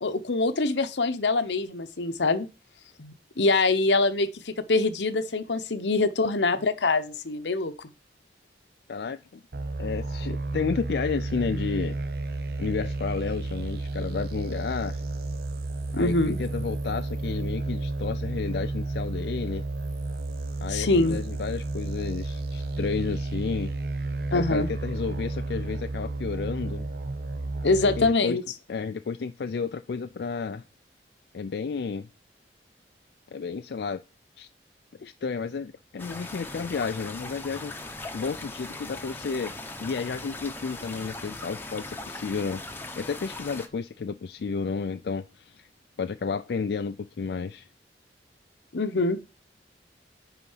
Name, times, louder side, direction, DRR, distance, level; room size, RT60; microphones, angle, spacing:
voice 1, 0.0-2.5 3.0-7.9 15.9-16.4 20.7-21.2 24.3-24.7 27.6-28.4 48.7-49.2, left 3 dB, 85° left, 0.9 m, -24 dB
voice 2, 8.9-9.4 9.8-12.0 12.6-15.0 15.9-19.6 20.6-23.7 24.3-26.8 27.8-28.4 28.7-30.6 31.3-32.1 33.3-34.0 34.4-34.5 35.0-37.7 38.1-42.6 43.0-45.7 46.0-47.7, left 5 dB, 65° left, 0.4 m, -32 dB
sound 1, 9.5-28.1, right 2 dB, 60° right, 0.7 m, -32 dB
sound 2, 36.0-43.7, left 2 dB, 10° left, 0.9 m, -39 dB
9.9 x 4.0 x 5.6 m
head